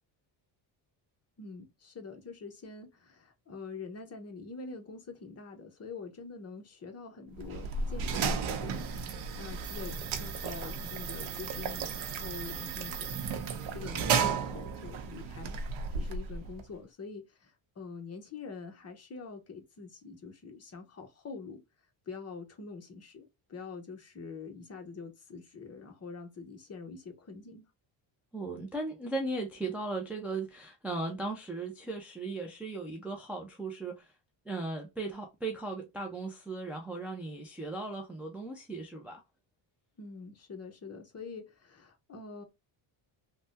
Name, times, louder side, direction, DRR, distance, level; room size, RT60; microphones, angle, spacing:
voice 1, 1.4-13.2 13.7-15.6 15.9-21.6 22.1-27.7 40.0-42.4, left 4 dB, 35° left, 0.8 m, -45 dB
sound 1, 7.4-16.7, right 6 dB, 80° right, 0.8 m, -34 dB
voice 2, 28.3-34.1 34.5-39.2, right 3 dB, 5° right, 0.3 m, -37 dB
3.4 x 2.1 x 2.6 m
cardioid pair, 140°, 47 cm